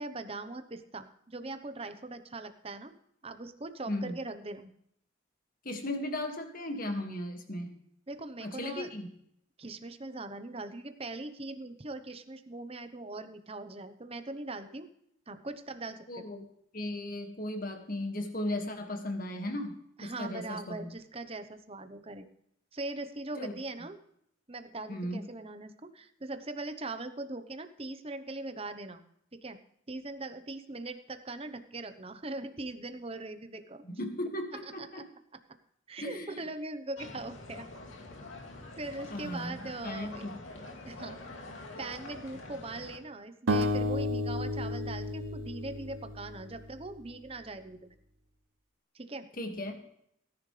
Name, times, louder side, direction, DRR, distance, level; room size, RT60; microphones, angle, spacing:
voice 1, 0.0-2.9 3.2-4.7 8.1-8.9 9.6-14.9 15.3-16.3 20.0-22.3 22.7-24.0 24.5-29.0 29.3-29.6 29.9-33.8 34.6-35.0 35.9-37.7 38.8-40.3 40.8-41.2 41.8-48.0 48.9-49.3, right 2 dB, 30° right, 9 dB, 0.9 m, -41 dB
voice 2, 3.9-4.2 5.6-7.7 8.4-9.1 16.1-16.4 16.7-19.8 20.0-20.9 23.4-23.5 24.9-25.2 33.8-35.0 36.0-36.4 39.1-40.4 49.4-49.8, left 1 dB, 45° left, 4 dB, 2.0 m, -36 dB
sound 1, 37.0-43.0, left 2 dB, 75° left, 2.5 m, -46 dB
sound 2, 43.5-46.6, left 1 dB, 85° right, 0.8 m, -32 dB
18.0 x 10.5 x 3.3 m, 0.73 s
head